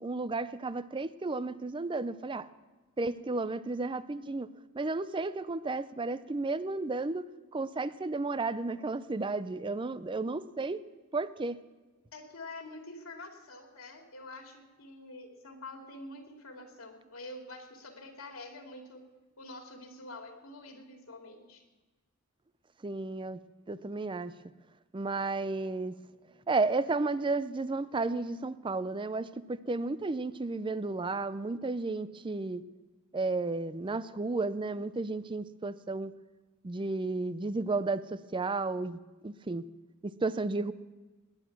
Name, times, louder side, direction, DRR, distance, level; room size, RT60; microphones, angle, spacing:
voice 1, 0.0-2.5 3.0-4.5 4.7-10.8 11.1-11.6 22.8-23.4 23.7-24.3 24.9-25.9 26.5-32.7 33.1-36.1 36.6-39.7 40.0-40.7, right 3 dB, 25° right, 15 dB, 0.5 m, -33 dB
voice 2, 12.1-19.0 19.4-21.6, left 2 dB, 90° left, 2 dB, 2.5 m, -46 dB
19.5 x 10.0 x 5.9 m, 1.2 s
head